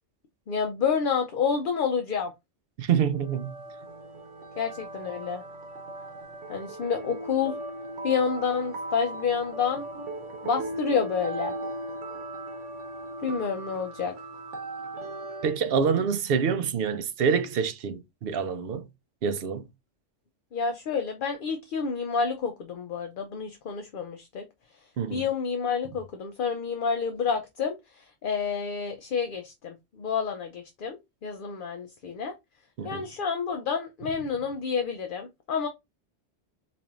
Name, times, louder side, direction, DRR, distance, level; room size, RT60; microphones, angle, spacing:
voice 1, 0.5-2.3 4.6-5.4 6.5-7.5 8.0-9.9 10.4-11.6 13.2-14.1 20.5-24.4 25.1-32.3 32.8-35.7, left 6 dB, 55° left, 0.7 m, -29 dB
voice 2, 2.8-3.5 15.4-18.9 19.2-19.7 25.0-25.2 32.8-33.0, right 6 dB, 60° right, 0.7 m, -26 dB
sound 1, 3.2-15.6, right 2 dB, 85° right, 1.2 m, -38 dB
4.3 x 3.3 x 2.4 m
omnidirectional pair, 1.2 m